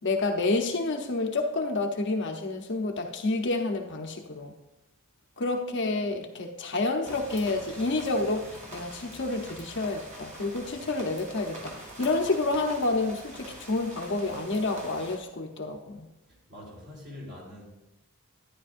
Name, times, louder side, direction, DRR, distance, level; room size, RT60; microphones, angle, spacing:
voice 1, 0.0-4.5 5.4-16.1, left 2 dB, 55° left, 3 dB, 0.9 m, -29 dB
sound 1, 7.0-15.2, right 1 dB, 35° right, 2.1 m, -45 dB
voice 2, 16.3-17.7, left 1 dB, 50° right, -3 dB, 3.7 m, -44 dB
12.5 x 10.0 x 2.6 m, 0.94 s
head